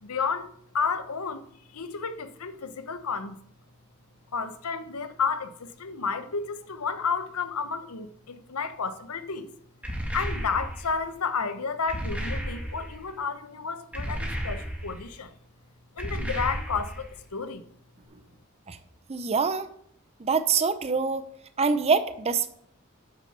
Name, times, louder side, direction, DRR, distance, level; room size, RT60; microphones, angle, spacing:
voice 1, 0.0-1.4 1.7-3.4 4.3-9.5 10.1-15.3 15.9-17.6, left 5 dB, 85° left, 0.9 m, -31 dB
sound 1, 9.8-10.9 11.9-13.0 13.9-15.0 16.0-17.1, equal, 5° right, 1.9 m, -33 dB
voice 2, 19.1-19.7 20.2-21.2 21.6-22.5, right 5 dB, 30° right, 0.5 m, -25 dB
9.1 x 6.3 x 5.9 m
head